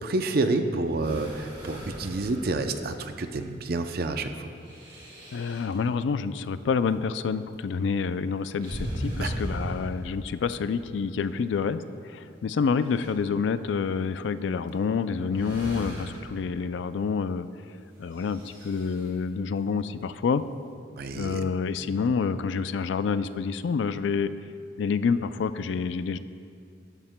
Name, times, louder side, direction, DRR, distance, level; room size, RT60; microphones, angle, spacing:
voice 1, 0.0-4.5 9.2-9.3 21.0-21.4, right 2 dB, 55° right, 7 dB, 0.5 m, -29 dB
sound 1, 0.9-3.1 4.6-5.7 8.6-10.6 11.8-11.9 12.5-13.1 14.7-14.8 15.3-16.4 18.1-19.1, equal, 25° right, 2.2 m, -37 dB
voice 2, 5.3-17.5 18.0-20.5 21.1-24.3 24.8-26.2, left 5 dB, 75° left, 13 dB, 0.4 m, -28 dB
13.0 x 11.0 x 2.2 m, 2.3 s
head